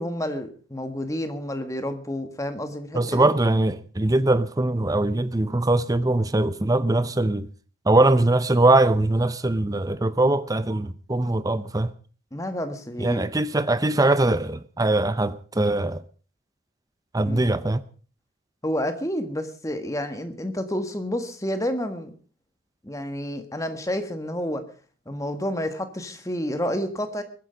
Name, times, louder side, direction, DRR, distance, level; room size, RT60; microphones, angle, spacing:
voice 1, 0.0-3.3 12.3-13.3 17.2-17.4 18.6-22.1 22.8-24.6 25.0-27.2, equal, 15° left, 1.6 m, -29 dB
voice 2, 2.9-7.5 7.9-11.9 13.0-16.0 17.1-17.8, right 2 dB, 15° right, 0.6 m, -21 dB
22.0 x 10.0 x 5.2 m
head